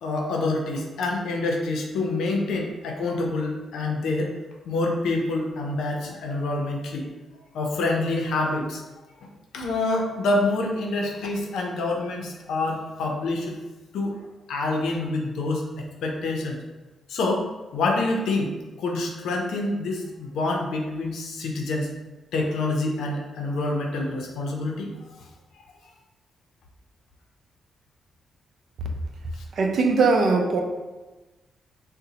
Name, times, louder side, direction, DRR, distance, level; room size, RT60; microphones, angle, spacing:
voice 1, 0.0-4.3 4.7-7.1 7.5-8.8 9.5-13.6 13.9-14.2 14.5-16.6 17.1-21.9 22.3-24.9 29.4-29.5, left 2 dB, 90° left, 1 dB, 0.5 m, -27 dB
voice 2, 29.5-30.6, right 4 dB, 60° right, 3 dB, 0.4 m, -20 dB
4.0 x 2.1 x 2.7 m, 1.2 s
cardioid pair, 120°, 0 cm